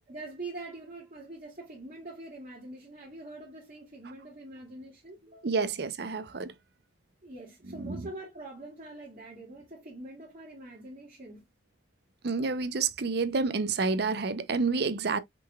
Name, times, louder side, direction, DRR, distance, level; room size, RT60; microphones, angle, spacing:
voice 1, 0.1-5.6 7.2-11.4, right 2 dB, 45° right, 2.2 m, -44 dB
voice 2, 5.4-6.5 7.8-8.0 12.2-15.2, right 4 dB, 65° right, 0.6 m, -29 dB
5.8 x 3.9 x 2.3 m
head